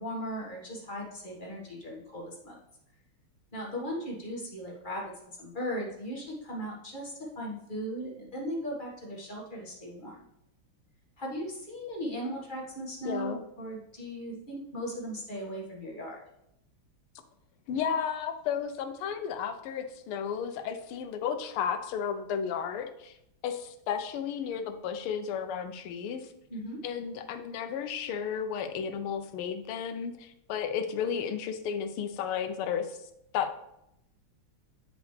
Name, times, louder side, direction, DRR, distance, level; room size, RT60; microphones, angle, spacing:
voice 1, 0.0-2.6 3.5-10.2 11.2-16.2 26.5-26.8, equal, 25° left, -3 dB, 1.6 m, -37 dB
voice 2, 13.0-13.4 17.7-23.2 23.4-26.3 26.8-33.0 33.3-33.5, left 7 dB, 85° left, 8 dB, 1.6 m, -33 dB
9.2 x 5.0 x 3.3 m, 0.81 s
omnidirectional pair, 2.3 m